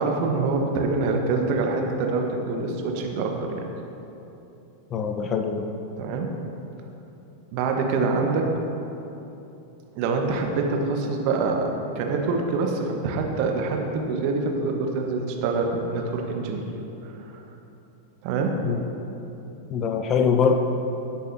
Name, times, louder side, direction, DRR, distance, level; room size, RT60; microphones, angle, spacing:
voice 1, 0.0-3.7 6.0-6.3 7.5-8.5 9.9-16.6 17.0-17.4 18.2-18.6, right 3 dB, 45° right, 2 dB, 1.3 m, -25 dB
voice 2, 4.9-5.7 18.6-18.8 19.7-20.5, left 6 dB, 30° left, 6 dB, 0.7 m, -23 dB
17.0 x 8.3 x 2.8 m, 2.9 s
figure-of-eight pair, 90°, 0 cm